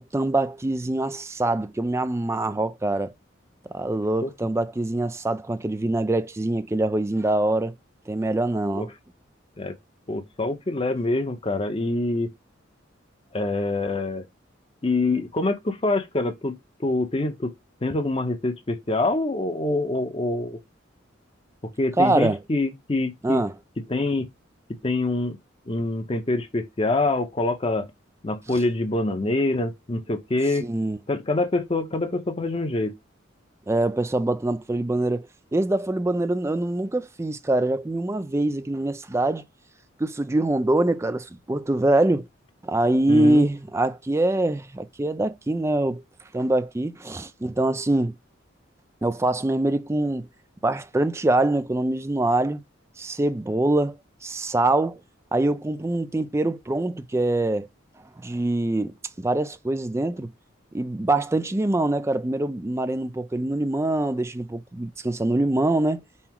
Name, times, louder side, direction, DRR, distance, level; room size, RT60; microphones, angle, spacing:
voice 1, 0.0-3.1 3.7-7.7 8.1-8.9 22.0-22.4 23.2-23.5 28.5-28.6 30.6-31.0 33.7-35.3 35.5-39.4 40.0-42.3 42.6-46.0 46.3-48.1 49.0-50.3 50.6-52.6 53.0-55.0 55.3-57.7 58.2-60.3 60.7-66.0, right 2 dB, 15° right, 0.3 m, -24 dB
voice 2, 10.1-12.3 13.3-14.2 14.8-17.5 17.8-20.6 21.8-23.4 23.9-24.3 24.8-25.4 25.7-27.9 28.2-30.7 31.1-32.9 43.1-43.4, left 2 dB, 30° left, 0.6 m, -25 dB
5.5 x 2.0 x 4.4 m
head